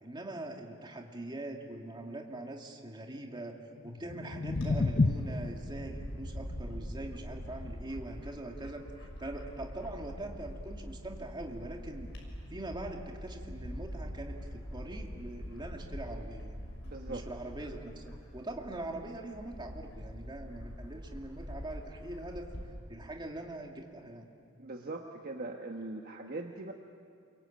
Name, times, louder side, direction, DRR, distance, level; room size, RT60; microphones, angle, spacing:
voice 1, 0.0-3.6 3.8-12.1 12.5-16.6 17.1-22.5 22.9-24.3, right 1 dB, 25° right, 1 dB, 2.5 m, -42 dB
sound 1, 3.8-9.9, left 3 dB, 40° left, 0.8 m, -34 dB
Bird / Wind, 4.5-22.7, equal, 70° left, 6.6 m, -44 dB
voice 2, 16.8-17.3 24.6-26.7, right 2 dB, 45° right, 3 dB, 1.2 m, -41 dB
28.5 x 23.5 x 8.8 m, 2.3 s
head